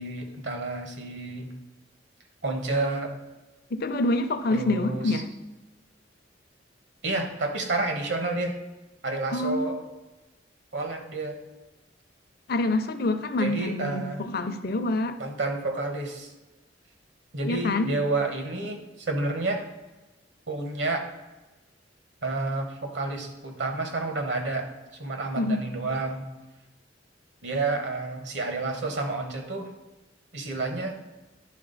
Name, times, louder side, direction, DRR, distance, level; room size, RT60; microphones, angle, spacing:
voice 1, 0.0-1.5 2.4-3.1 4.5-5.2 7.0-8.6 9.0-9.8 10.7-11.4 13.4-14.2 15.2-16.3 17.3-19.7 20.5-21.1 22.2-24.7 25.0-26.3 27.4-29.7 30.3-31.0, right 2 dB, 75° right, 4 dB, 1.3 m, -30 dB
voice 2, 3.7-5.3 9.3-9.7 12.5-15.2 17.4-17.9 25.4-25.6, left 2 dB, 55° left, 9 dB, 0.6 m, -26 dB
11.0 x 3.7 x 4.0 m, 1.1 s
head